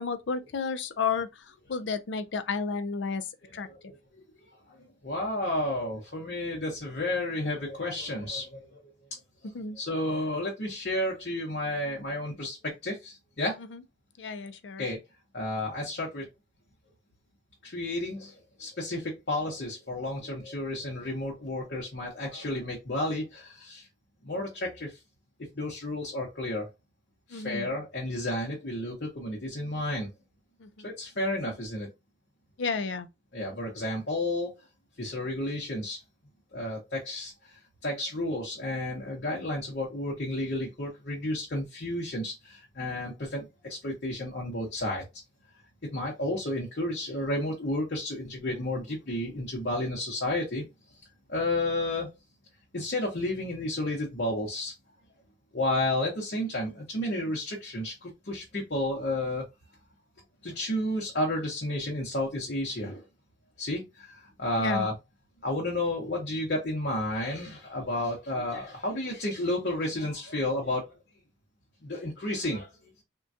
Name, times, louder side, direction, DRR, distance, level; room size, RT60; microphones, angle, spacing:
voice 1, 0.0-3.3 3.5-3.7 9.4-9.8 13.7-13.8 14.2-14.9 27.3-27.7 30.6-30.9 32.6-33.1 64.6-64.9, left 5 dB, 80° left, 0.5 m, -32 dB
voice 2, 3.6-4.0 4.7-8.8 9.4-13.6 14.8-15.0 15.3-16.3 17.6-23.9 24.2-25.0 25.5-26.7 27.3-30.1 30.8-31.9 33.3-34.5 35.0-36.0 36.5-37.3 37.8-45.0 45.9-50.6 51.3-52.1 52.7-54.7 55.5-59.4 60.4-63.0 63.6-64.9 65.4-71.0 71.8-72.9, left 1 dB, 60° left, 0.9 m, -32 dB
3.7 x 2.2 x 2.6 m
head